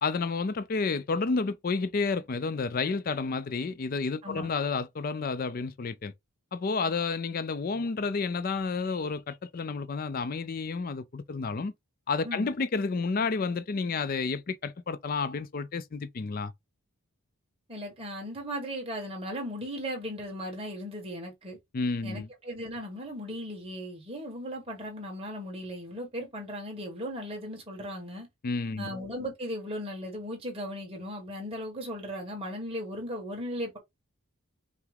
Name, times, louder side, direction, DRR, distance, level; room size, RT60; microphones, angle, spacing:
voice 1, 0.0-6.1 6.5-11.7 12.1-16.5 21.7-22.3 28.4-28.9, left 4 dB, 40° left, 0.4 m, -30 dB
voice 2, 4.2-4.5 12.2-12.5 17.7-21.6 22.0-28.3 28.8-33.8, equal, 25° right, 1.5 m, -37 dB
5.7 x 2.1 x 3.8 m
head